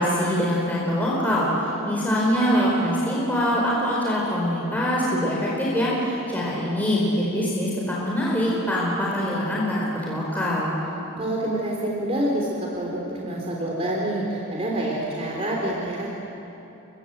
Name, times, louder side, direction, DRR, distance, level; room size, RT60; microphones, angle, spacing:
voice 1, 0.0-10.7, equal, 10° left, -5 dB, 4.5 m, -24 dB
voice 2, 11.2-16.1, right 1 dB, 30° right, -2 dB, 3.4 m, -27 dB
30.0 x 24.5 x 8.1 m, 3.0 s
head